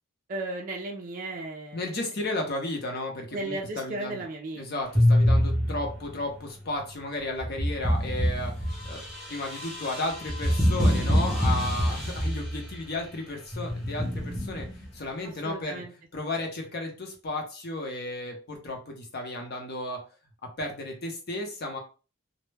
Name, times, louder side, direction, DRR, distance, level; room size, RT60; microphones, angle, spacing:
voice 1, 0.3-1.8 3.3-4.7 15.4-15.9, right 2 dB, 40° right, 0 dB, 0.3 m, -35 dB
voice 2, 1.7-4.2 4.6-9.0 9.3-14.7 14.9-15.8 16.1-20.0 20.6-21.8, left 2 dB, 50° left, 2 dB, 0.7 m, -34 dB
sound 1, 5.0-6.2 7.4-12.8 13.5-14.9, equal, ahead, 0.6 m, -25 dB
2.1 x 2.0 x 3.2 m, 0.34 s
head